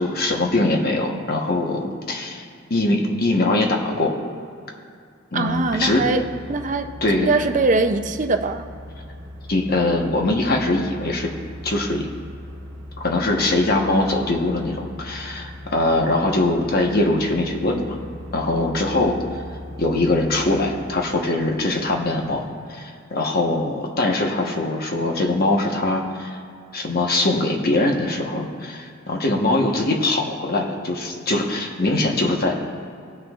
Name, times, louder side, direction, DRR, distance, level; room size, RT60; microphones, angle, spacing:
voice 1, 0.0-2.4 2.7-4.2 5.3-6.0 7.0-7.3 9.5-11.3 11.6-12.1 13.0-18.0 18.3-19.2 19.8-26.4 26.7-32.5, left 2 dB, 50° left, 1 dB, 1.1 m, -22 dB
voice 2, 5.3-6.2 6.5-8.7, right 3 dB, 40° right, 7 dB, 0.5 m, -22 dB
sound 1, 5.5-22.5, left 1 dB, 75° right, 0.8 m, -39 dB
18.5 x 6.3 x 2.4 m, 2.4 s
head